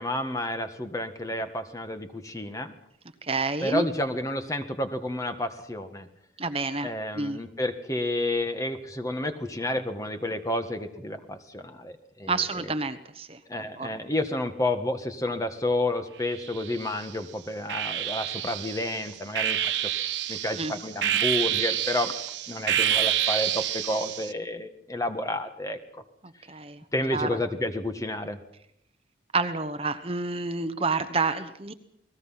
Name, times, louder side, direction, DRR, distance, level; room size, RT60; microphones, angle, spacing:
voice 1, 0.0-2.7 3.6-6.1 6.8-12.4 13.5-19.9 20.3-22.1 22.5-25.8 26.9-28.4, left 1 dB, 20° left, 7 dB, 1.7 m, -30 dB
voice 2, 3.2-3.9 6.4-7.4 12.3-13.4 13.8-13.9 20.5-20.7 26.5-26.8 27.1-27.3 29.3-31.7, right 3 dB, 30° right, 9 dB, 1.2 m, -29 dB
sound 1, 16.3-17.1 17.7-24.3, right 10 dB, 85° right, 1.2 m, -28 dB
29.5 x 19.5 x 5.8 m, 0.73 s
head